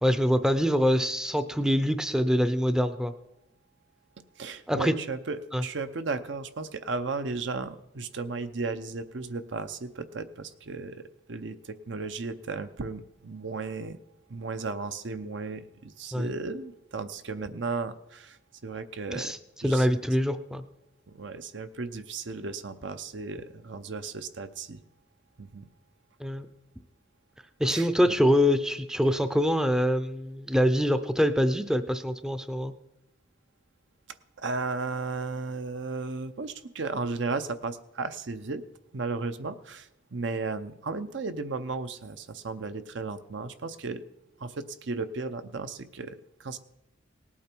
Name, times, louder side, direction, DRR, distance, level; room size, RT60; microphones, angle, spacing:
voice 1, 0.0-3.1 4.7-4.9 5.5-5.6 16.1-16.3 19.1-19.4 19.6-20.6 26.2-26.5 27.6-32.7, equal, 5° right, 10 dB, 0.5 m, -24 dB
voice 2, 4.4-11.0 11.3-14.0 14.3-18.4 18.6-19.3 19.6-19.9 21.1-24.8 25.4-25.7 27.7-28.2 34.4-38.6 38.9-44.0 44.4-46.6, right 3 dB, 70° right, 10 dB, 0.7 m, -35 dB
18.5 x 8.5 x 4.5 m, 0.88 s
head